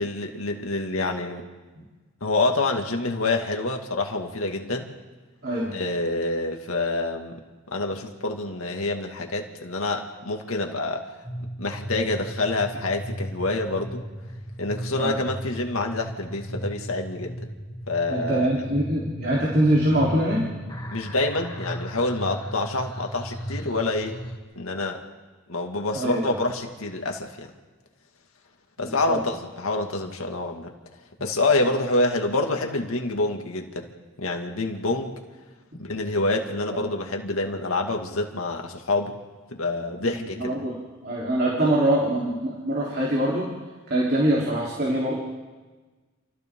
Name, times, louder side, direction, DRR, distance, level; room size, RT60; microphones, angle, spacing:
voice 1, 0.0-1.5 2.2-4.9 5.7-7.4 7.7-11.0 11.6-14.0 14.6-17.4 17.9-18.5 20.9-24.2 24.6-25.0 25.5-27.5 28.8-30.7 31.2-33.9 34.2-35.1 35.8-39.1 39.5-40.5, left 2 dB, 85° left, 2 dB, 2.2 m, -27 dB
sound 1, 11.2-24.4, equal, 20° left, 2.4 m, -36 dB
voice 2, 18.1-20.4 25.9-26.4 28.8-29.2 36.7-36.8 40.4-40.7 41.0-43.5 43.9-45.2, right 1 dB, 45° right, -5 dB, 3.8 m, -23 dB
28.5 x 28.5 x 3.9 m, 1.3 s
head